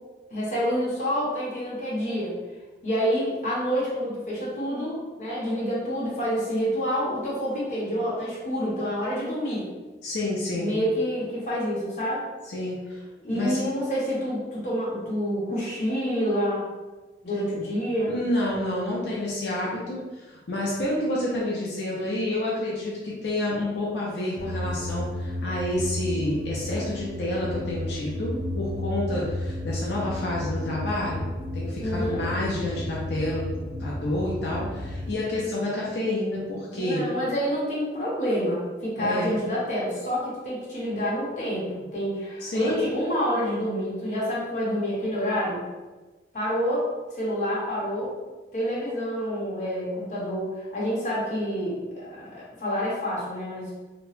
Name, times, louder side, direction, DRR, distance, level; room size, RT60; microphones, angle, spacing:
voice 1, 0.3-2.3 2.8-9.7 10.5-12.2 13.2-16.6 17.2-18.1 31.8-32.2 36.7-45.6 46.3-46.9 47.1-48.1 48.5-53.7, equal, 45° left, -7 dB, 1.0 m, -28 dB
voice 2, 10.0-10.7 12.5-13.0 13.3-13.6 17.6-17.7 18.1-33.5 33.8-37.0 39.0-39.4 42.4-42.8, left 1 dB, 75° left, -5 dB, 0.6 m, -29 dB
sound 1, 24.4-35.1, left 1 dB, 20° right, 1.0 m, -32 dB
2.9 x 2.2 x 3.1 m, 1.2 s
head